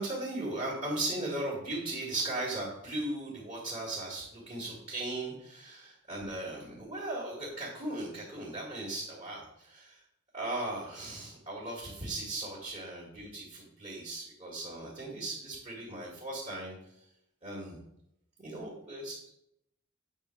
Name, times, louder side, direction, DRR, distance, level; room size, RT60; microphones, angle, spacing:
voice 1, 0.0-10.0 10.3-16.8 17.4-17.8 18.4-19.3, right 2 dB, 30° right, -6 dB, 2.2 m, -37 dB
8.9 x 3.7 x 6.3 m, 0.78 s
head